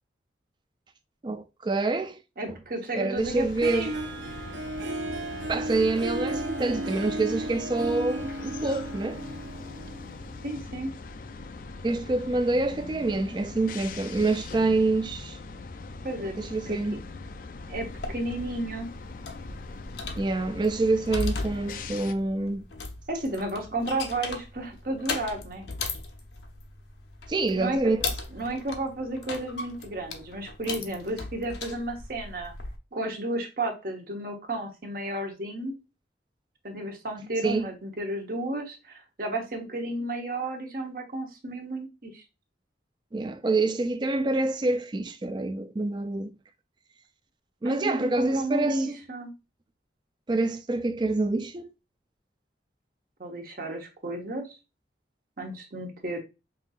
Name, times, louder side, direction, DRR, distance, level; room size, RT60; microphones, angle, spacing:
voice 1, 1.2-2.2 2.9-3.9 5.5-9.2 11.8-15.4 16.4-17.0 20.2-22.7 27.3-28.0 37.4-37.7 43.1-46.3 47.6-48.9 50.3-51.7, right 2 dB, 25° right, 0.4 m, -26 dB
voice 2, 2.4-4.1 10.4-10.9 16.0-16.3 16.7-16.8 17.7-18.9 23.1-25.7 27.5-27.9 28.3-32.5 32.9-35.8 36.6-42.2 47.6-49.3 53.2-54.5 55.4-56.2, right 1 dB, 50° right, 1.0 m, -32 dB
sound 1, 3.1-22.1, left 3 dB, 50° left, 0.3 m, -41 dB
Harp, 3.6-10.5, right 2 dB, 85° right, 0.7 m, -34 dB
sound 2, 17.7-32.8, left 3 dB, 75° left, 0.7 m, -38 dB
5.5 x 2.7 x 2.3 m
head